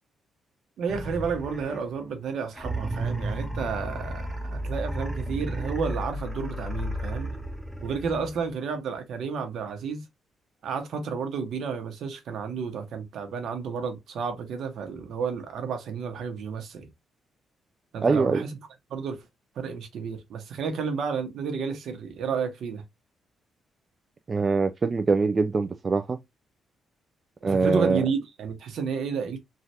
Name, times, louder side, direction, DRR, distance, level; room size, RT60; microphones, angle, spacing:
voice 1, 0.8-7.3 7.8-10.1 10.6-16.9 17.9-18.5 18.9-19.2 19.6-22.8 27.4-29.4, right 5 dB, 70° right, 0.9 m, -31 dB
sound 1, 0.9-2.0 2.5-8.5, right 1 dB, 5° right, 0.7 m, -33 dB
voice 2, 18.0-18.4 24.3-26.2 27.4-28.0, right 4 dB, 35° right, 0.3 m, -23 dB
3.2 x 2.4 x 2.8 m
cardioid pair, 90°, 0 cm